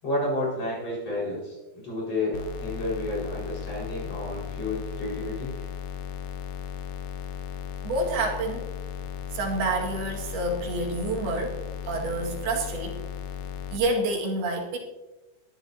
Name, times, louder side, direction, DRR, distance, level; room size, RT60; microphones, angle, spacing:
voice 1, 0.0-5.7, left 1 dB, 40° left, -5 dB, 6.0 m, -31 dB
sound 1, 2.3-13.8, left 7 dB, 90° left, 1.6 m, -36 dB
voice 2, 7.8-8.7 9.3-11.6 11.8-13.0 13.7-14.8, right 2 dB, 80° right, -1 dB, 3.9 m, -28 dB
22.0 x 13.0 x 2.8 m, 1.1 s
omnidirectional pair, 4.4 m